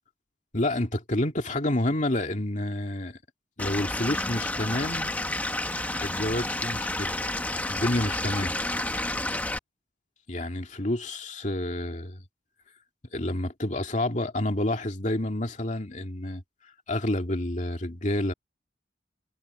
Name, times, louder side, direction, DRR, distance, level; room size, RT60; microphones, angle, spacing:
voice 1, 0.5-3.2 3.6-5.1 6.0-7.2 7.6-8.5 10.3-12.2 13.1-16.4 16.9-18.3, left 1 dB, 40° left, 2.3 m, -29 dB
Stream / Liquid, 3.6-9.6, left 1 dB, 10° left, 1.0 m, -30 dB
head